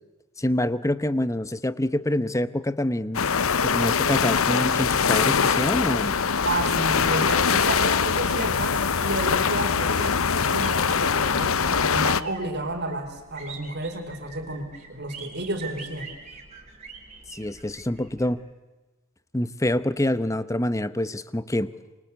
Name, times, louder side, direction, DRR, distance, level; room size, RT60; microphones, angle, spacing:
voice 1, 0.4-3.2 3.6-6.1 17.3-18.4 19.3-21.7, left 1 dB, 15° left, 0.9 m, -26 dB
sound 1, 3.1-12.2, left 6 dB, 75° left, 0.9 m, -23 dB
sound 2, 6.1-18.3, right 4 dB, 30° right, 5.5 m, -46 dB
voice 2, 6.4-16.2, right 2 dB, 50° right, 4.3 m, -31 dB
27.5 x 24.5 x 8.2 m
head